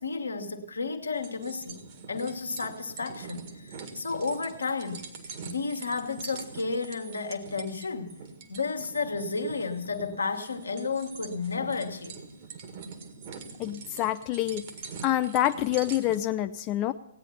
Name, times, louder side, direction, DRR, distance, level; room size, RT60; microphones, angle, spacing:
voice 1, 0.0-5.1 5.4-8.2 8.5-12.2, left 4 dB, 75° left, 5 dB, 1.3 m, -32 dB
sound 1, 1.1-16.2, right 5 dB, 45° right, 1.7 m, -44 dB
voice 2, 13.6-14.7 15.0-16.9, left 13 dB, 30° left, 8 dB, 0.4 m, -27 dB
16.5 x 9.2 x 5.6 m, 0.89 s
figure-of-eight pair, 120°, 0 cm